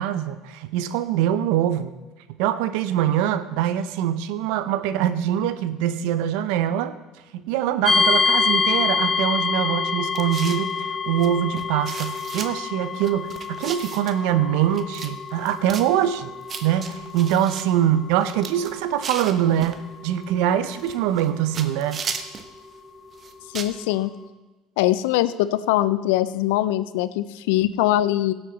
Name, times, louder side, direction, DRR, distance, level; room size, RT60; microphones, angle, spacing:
voice 1, 0.0-1.9 2.4-6.9 7.3-16.3 16.6-22.0, right 11 dB, 75° right, 12 dB, 0.7 m, -23 dB
sound 1, 7.8-22.7, left 4 dB, 20° left, 1.6 m, -27 dB
sound 2, 10.1-10.7 11.2-11.3 11.6-12.5 13.0-14.2 14.7-15.1 15.4-15.9 16.5-17.6 18.1-19.8 20.6-21.3 21.5-22.5 23.1-23.8, right 6 dB, 45° right, 1.1 m, -35 dB
voice 2, 23.5-24.1 24.8-28.3, left 14 dB, 80° left, 15 dB, 0.5 m, -22 dB
17.0 x 7.9 x 4.1 m, 1.2 s
hypercardioid pair, 75°, 0 cm